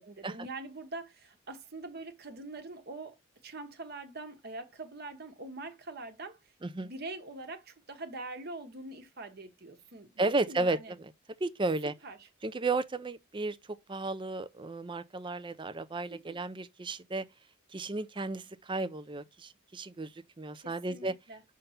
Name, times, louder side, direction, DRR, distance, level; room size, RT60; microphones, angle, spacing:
voice 1, 0.0-3.2 3.4-6.5 6.8-10.9 12.0-12.3 16.1-16.4 20.5-21.4, right 2 dB, 50° right, 1.2 m, -44 dB
voice 2, 6.6-6.9 10.2-11.1 11.4-11.9 12.4-13.6 13.9-17.3 17.7-21.1, right 2 dB, 25° right, 0.5 m, -33 dB
5.7 x 3.7 x 5.5 m
head